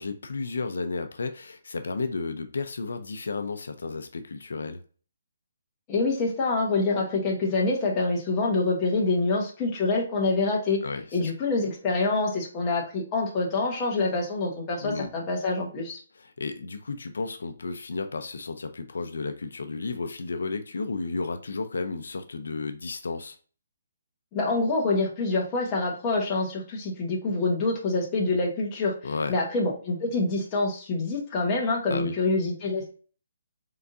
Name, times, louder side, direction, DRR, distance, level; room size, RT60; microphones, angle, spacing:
voice 1, 0.0-4.8 10.8-11.3 14.8-15.1 16.1-23.4 29.0-29.4 31.9-32.1, left 4 dB, 80° left, 7 dB, 0.6 m, -33 dB
voice 2, 5.9-10.8 11.1-16.0 24.3-28.9 29.3-32.9, left 3 dB, 15° left, -2 dB, 1.1 m, -26 dB
3.8 x 3.5 x 2.6 m, 0.39 s
hypercardioid pair, 170°, 0 cm